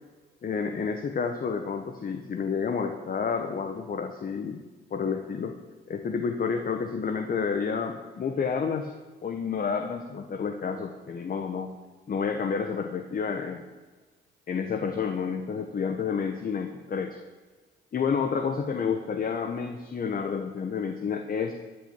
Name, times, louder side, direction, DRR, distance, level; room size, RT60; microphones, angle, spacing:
voice 1, 0.4-4.6 4.9-5.6 5.9-8.9 9.2-11.7 12.1-13.6 14.5-17.2 17.9-21.5, left 6 dB, 45° left, 6 dB, 1.2 m, -30 dB
14.0 x 6.7 x 8.7 m, 1.3 s
cardioid pair, 90°, 20 cm